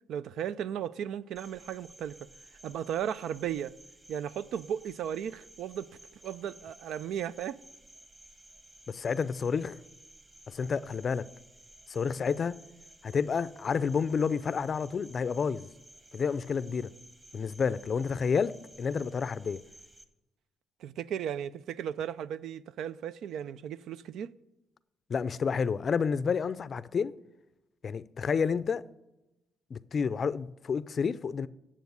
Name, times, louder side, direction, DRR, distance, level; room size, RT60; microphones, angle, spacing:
voice 1, 0.1-2.2 2.6-3.7 4.1-5.9 6.2-7.6 20.8-24.3, right 9 dB, 80° right, 0.4 m, -35 dB
Cricket, 1.3-20.0, right 1 dB, 20° right, 1.3 m, -55 dB
voice 2, 8.9-9.8 10.5-11.3 11.9-12.6 13.0-15.7 16.1-16.9 17.3-19.6 25.1-27.1 27.8-28.8 29.7-31.5, left 6 dB, 45° left, 0.4 m, -30 dB
9.3 x 7.3 x 8.0 m
cardioid pair, 100°, 0 cm